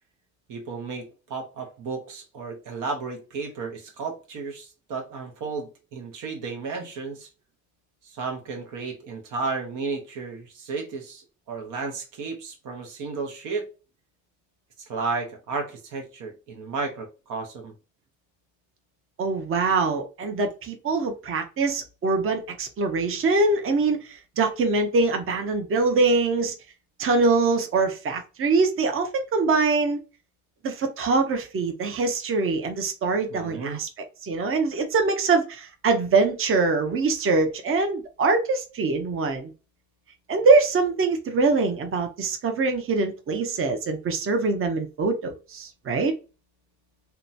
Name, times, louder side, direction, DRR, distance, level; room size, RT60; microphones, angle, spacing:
voice 1, 0.5-7.3 8.0-13.7 14.8-17.7 33.3-33.8, right 4 dB, 90° right, 0.9 m, -33 dB
voice 2, 19.2-26.5 27.0-30.0 30.6-33.9 34.2-39.5 40.3-46.1, right 3 dB, 45° right, 0.7 m, -23 dB
2.8 x 2.2 x 2.4 m
cardioid pair, 90°, 30 cm